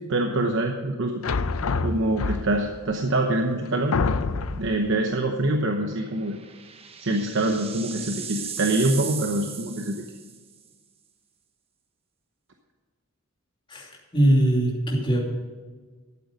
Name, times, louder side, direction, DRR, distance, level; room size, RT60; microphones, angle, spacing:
voice 1, 0.1-1.2 1.8-4.0 4.5-6.4 7.0-9.9, right 2 dB, 60° right, 3 dB, 1.0 m, -25 dB
sound 1, 1.2-2.7 3.4-3.5 3.9-4.8, left 4 dB, 90° left, 0.6 m, -26 dB
sound 2, 5.9-10.6, right 7 dB, 30° right, 0.8 m, -37 dB
voice 2, 13.7-15.2, right 1 dB, 25° left, -2 dB, 2.7 m, -21 dB
12.5 x 8.2 x 5.2 m, 1.5 s
head